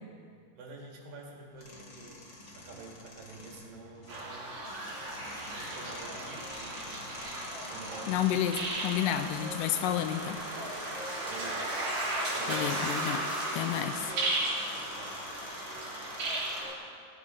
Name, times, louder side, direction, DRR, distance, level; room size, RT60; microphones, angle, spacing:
voice 1, 0.5-2.2 2.5-4.5 5.5-7.0 7.7-8.2 11.3-11.7 12.3-12.8 14.9-15.2, right 3 dB, 75° right, -2 dB, 3.8 m, -47 dB
sound 1, 1.5-16.6, left 2 dB, 45° left, 1.8 m, -48 dB
sound 2, 4.1-16.7, right 1 dB, 55° right, 4.7 m, -35 dB
voice 2, 8.1-10.4 12.5-13.2 13.5-14.1, left 10 dB, 80° left, 8 dB, 2.1 m, -30 dB
18.5 x 8.5 x 5.5 m, 2.3 s
omnidirectional pair, 4.0 m